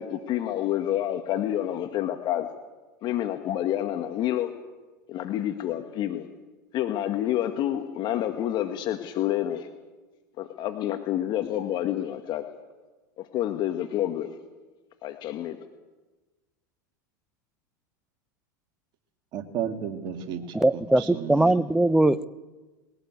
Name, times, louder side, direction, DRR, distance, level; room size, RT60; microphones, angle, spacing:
voice 1, 0.0-2.5 3.0-4.5 5.1-6.3 6.7-9.7 10.4-12.4 13.2-14.3 15.0-15.6, left 12 dB, 45° left, 1.8 m, -28 dB
voice 2, 19.3-21.6, right 8 dB, 50° right, 2.5 m, -33 dB
voice 3, 20.5-22.2, right 1 dB, 5° right, 0.8 m, -21 dB
21.5 x 17.5 x 8.3 m
hypercardioid pair, 95°, 10 cm